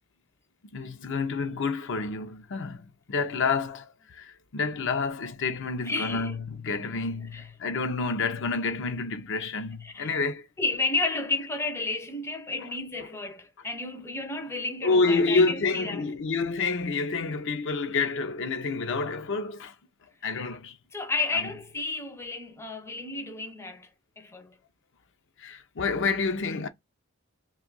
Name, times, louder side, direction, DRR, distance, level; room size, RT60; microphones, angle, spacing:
voice 1, 0.7-10.5 14.8-19.7 20.2-20.8 25.4-26.7, left 4 dB, 60° left, 0.6 m, -28 dB
voice 2, 5.8-6.3 7.3-7.5 9.8-10.2 10.6-16.1 20.9-23.9 24.2-24.6, left 3 dB, 15° left, 0.5 m, -32 dB
2.7 x 2.4 x 3.8 m
head